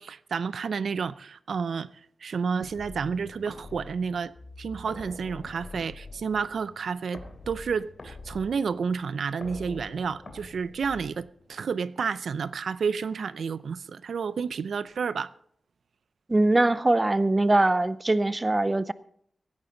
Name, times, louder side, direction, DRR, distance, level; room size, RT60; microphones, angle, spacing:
voice 1, 0.0-1.9 2.2-4.3 4.6-15.3, right 5 dB, 90° right, 0.5 m, -30 dB
sound 1, 2.6-11.6, left 3 dB, 45° left, 3.0 m, -45 dB
voice 2, 16.3-18.9, right 2 dB, 20° right, 0.5 m, -22 dB
17.0 x 14.0 x 3.9 m
wide cardioid pair, 165°, 0 cm